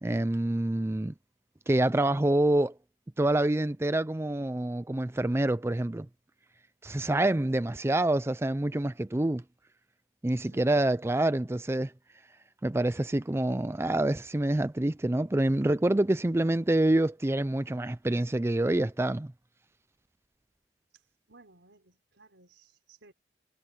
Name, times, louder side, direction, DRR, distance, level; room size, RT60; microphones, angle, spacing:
voice 1, 0.0-1.1 1.7-2.7 3.2-6.1 6.8-9.4 10.2-11.9 12.6-19.3, right 1 dB, 15° right, 0.4 m, -26 dB
voice 2, 10.5-11.0 20.9-21.0 21.3-23.1, right 3 dB, 85° right, 4.1 m, -58 dB
head